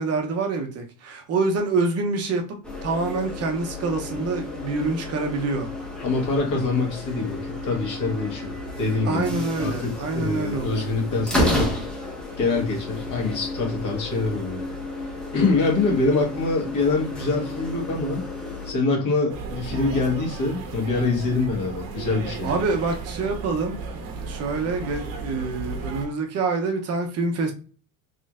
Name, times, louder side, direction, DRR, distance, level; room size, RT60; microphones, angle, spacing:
voice 1, 0.0-5.7 9.0-10.9 22.4-23.8 24.3-27.5, right 3 dB, 35° right, 0.8 m, -26 dB
sound 1, 2.6-18.7, left 1 dB, ahead, 0.8 m, -31 dB
voice 2, 6.0-11.7 12.4-14.6 15.3-18.2 18.6-22.6, left 3 dB, 40° left, 1.6 m, -25 dB
sound 2, 19.3-26.1, right 4 dB, 85° right, 1.2 m, -34 dB
4.0 x 3.1 x 2.5 m
supercardioid pair, 135°, 45 cm